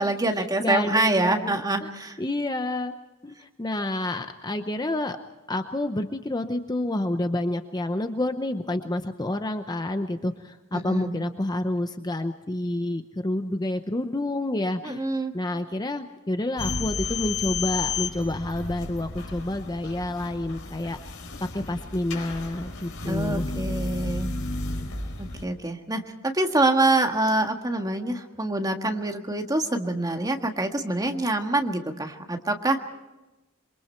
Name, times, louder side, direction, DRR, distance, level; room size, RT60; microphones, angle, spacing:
voice 1, 0.0-2.2 10.7-11.1 14.8-15.3 23.0-24.3 25.2-32.8, right 2 dB, 20° right, 4 dB, 1.7 m, -25 dB
voice 2, 0.6-1.9 2.2-2.9 3.2-5.2 5.5-15.1 15.3-21.0 21.4-23.6, left 1 dB, 20° left, 8 dB, 0.8 m, -29 dB
sound 1, 16.6-25.4, left 3 dB, 70° left, 4.2 m, -32 dB
27.5 x 23.0 x 4.5 m, 1.1 s
head